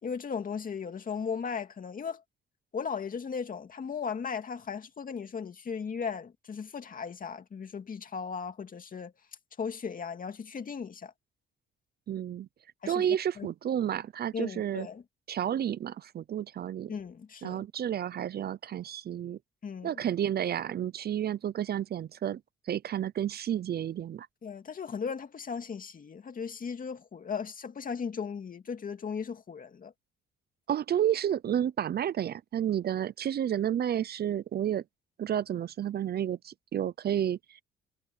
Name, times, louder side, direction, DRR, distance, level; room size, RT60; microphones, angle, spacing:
voice 1, 0.0-2.2 2.7-9.1 9.6-11.1 12.8-13.1 13.4-13.5 14.3-15.0 16.9-17.6 19.6-19.9 24.4-29.9, left 6 dB, 45° left, 2.3 m, -37 dB
voice 2, 12.1-12.5 12.9-14.9 15.3-16.9 17.4-19.4 19.8-22.4 22.7-24.3 30.7-34.8 35.2-37.6, right 10 dB, 55° right, 0.6 m, -31 dB
cardioid pair, 90°, 20 cm